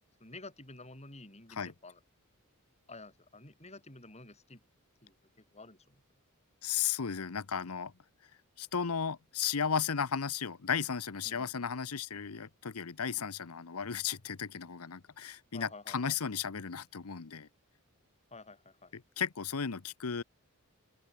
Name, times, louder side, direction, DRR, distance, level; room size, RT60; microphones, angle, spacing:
voice 1, 0.2-2.0 2.9-4.6 5.0-5.1 5.5-6.0 11.2-11.6 15.5-16.2 18.3-18.9, left 2 dB, 30° left, 6.9 m, -51 dB
voice 2, 6.6-7.9 8.6-17.5 18.9-20.2, left 7 dB, 85° left, 0.9 m, -35 dB
open air
head